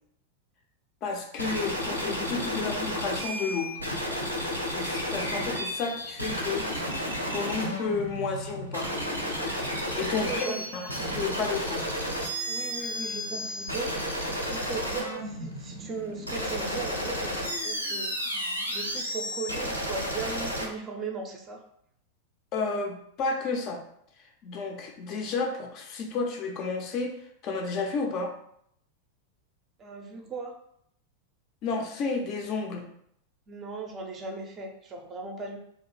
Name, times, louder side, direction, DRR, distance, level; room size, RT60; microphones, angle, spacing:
voice 1, 1.0-3.7 4.7-6.7 7.3-8.9 9.9-11.9 22.5-23.8 24.4-27.1 27.4-28.3 31.6-32.9, left 4 dB, 40° left, 4 dB, 0.4 m, -31 dB
sound 1, 1.4-20.6, equal, 90° right, 0.5 m, -32 dB
sound 2, 4.7-6.0 6.3-6.4 6.9-7.4 9.4-11.4, equal, 90° left, 0.5 m, -41 dB
voice 2, 9.9-10.6 12.5-14.1 14.5-18.1 18.7-21.6 29.8-30.5 33.5-35.6, right 4 dB, 25° right, 2 dB, 0.5 m, -37 dB
2.5 x 2.2 x 3.0 m, 0.70 s
figure-of-eight pair, 90°, 0 cm